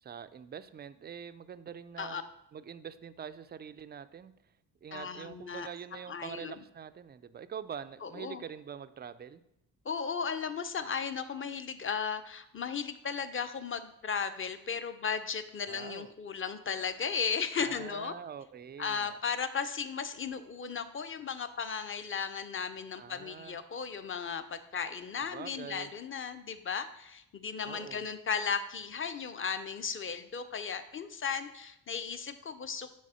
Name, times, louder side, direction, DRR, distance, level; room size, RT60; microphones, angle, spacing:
voice 1, 0.0-2.2 2.5-4.3 4.8-9.4 15.7-16.1 17.6-19.2 23.0-23.6 25.3-25.9 27.6-28.1, right 7 dB, 25° right, 13 dB, 0.3 m, -45 dB
voice 2, 4.9-5.7 6.1-6.5 8.0-8.4 9.8-18.1 18.8-32.9, left 6 dB, 30° left, 11 dB, 0.6 m, -35 dB
6.4 x 3.5 x 5.5 m, 0.80 s
supercardioid pair, 55°, 44 cm